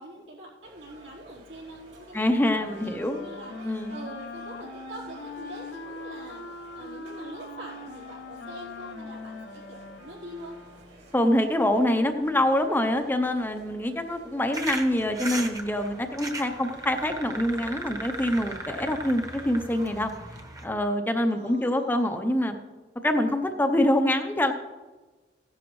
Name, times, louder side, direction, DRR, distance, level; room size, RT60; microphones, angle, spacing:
voice 1, 0.0-10.6 21.3-22.2, right 1 dB, 85° right, -5 dB, 4.1 m, -44 dB
sound 1, 0.6-19.9, right 1 dB, 60° right, 2.9 m, -51 dB
voice 2, 2.1-3.2 3.6-3.9 11.1-20.1 20.6-22.6 23.0-24.5, left 1 dB, 10° left, 6 dB, 0.6 m, -25 dB
Wind instrument woodwind instrument, 2.3-11.0, left 3 dB, 65° left, 0.8 m, -41 dB
sound 2, 14.5-20.6, right 2 dB, 20° right, 1.0 m, -37 dB
16.0 x 11.0 x 3.1 m, 1.2 s
head